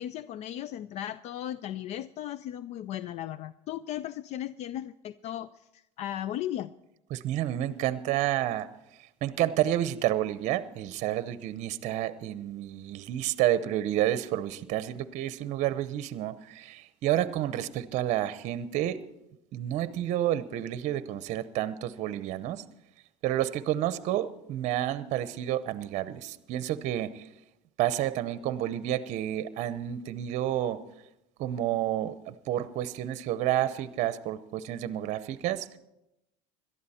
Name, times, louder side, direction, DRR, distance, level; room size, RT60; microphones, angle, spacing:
voice 1, 0.0-6.7, left 12 dB, 50° left, 17 dB, 0.4 m, -36 dB
voice 2, 7.1-8.7 9.2-19.0 19.5-22.6 23.2-27.3 27.8-30.8 31.4-35.8, right 12 dB, 55° right, 14 dB, 0.7 m, -30 dB
17.5 x 12.5 x 4.3 m, 0.88 s
supercardioid pair, 110°, 15 cm